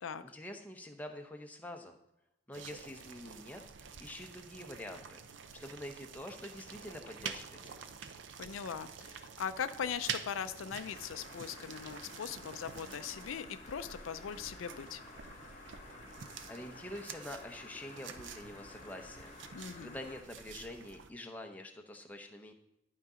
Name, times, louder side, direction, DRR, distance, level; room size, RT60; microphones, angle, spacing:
voice 1, 0.2-2.0 2.5-3.6 4.0-5.2 5.6-7.9 16.5-19.3 19.8-22.5, left 1 dB, 10° left, 3 dB, 0.7 m, -46 dB
sound 1, 2.5-21.1, right 7 dB, 65° right, 0.5 m, -48 dB
voice 2, 8.4-15.0 19.5-20.0, left 7 dB, 80° left, 12 dB, 0.4 m, -40 dB
sound 2, 10.7-20.2, left 3 dB, 35° left, 1.2 m, -53 dB
11.5 x 4.0 x 4.9 m, 0.87 s
head